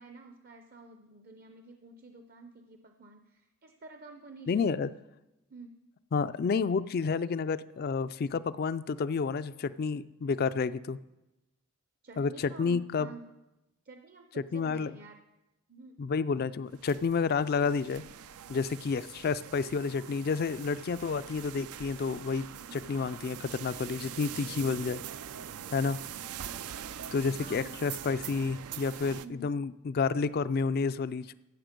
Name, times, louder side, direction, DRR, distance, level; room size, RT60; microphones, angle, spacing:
voice 1, 0.0-4.8 5.5-5.8 12.0-13.3 13.8-15.2 15.7-16.0 22.7-23.1 24.5-25.0 25.5-25.9 27.4-27.7 29.2-29.6, right 2 dB, 40° right, 5 dB, 0.6 m, -50 dB
voice 2, 4.5-4.9 6.1-11.0 12.2-13.1 14.5-14.9 16.0-18.0 18.5-22.5 22.7-25.0 25.7-26.0 27.1-31.3, left 5 dB, 45° left, 16 dB, 0.3 m, -30 dB
sound 1, 16.7-29.3, right 9 dB, 85° right, 0.5 m, -43 dB
15.0 x 7.4 x 5.2 m, 0.99 s
head